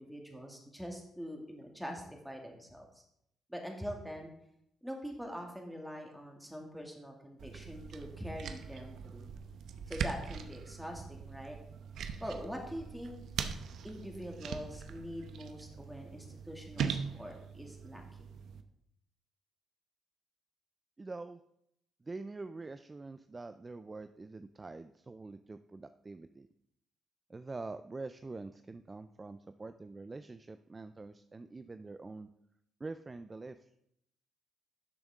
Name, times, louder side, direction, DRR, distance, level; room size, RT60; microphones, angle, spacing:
voice 1, 0.0-3.0 3.5-4.3 4.8-9.3 9.9-11.6 12.2-13.1 13.8-18.0, equal, ahead, 1 dB, 2.3 m, -44 dB
sound 1, 7.4-18.6, right 6 dB, 70° right, 0.8 m, -41 dB
voice 2, 21.0-21.4 22.0-26.5 27.3-32.3 32.8-33.6, right 3 dB, 25° right, 10 dB, 0.4 m, -45 dB
12.0 x 7.0 x 3.7 m, 0.77 s
cardioid pair, 90°, 0 cm